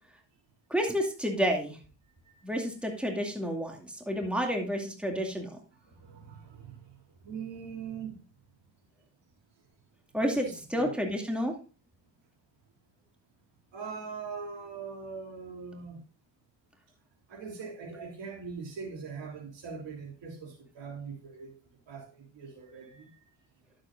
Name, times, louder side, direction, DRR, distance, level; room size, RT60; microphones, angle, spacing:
voice 1, 0.7-1.8 2.4-5.5 10.1-11.5, equal, ahead, 2 dB, 2.4 m, -30 dB
voice 2, 5.8-7.0 7.2-8.1 10.3-11.0 13.7-16.0 17.3-21.5 21.9-23.1, right 5 dB, 65° right, 1 dB, 3.4 m, -42 dB
12.0 x 7.7 x 2.5 m, 0.33 s
supercardioid pair, 70°, 46 cm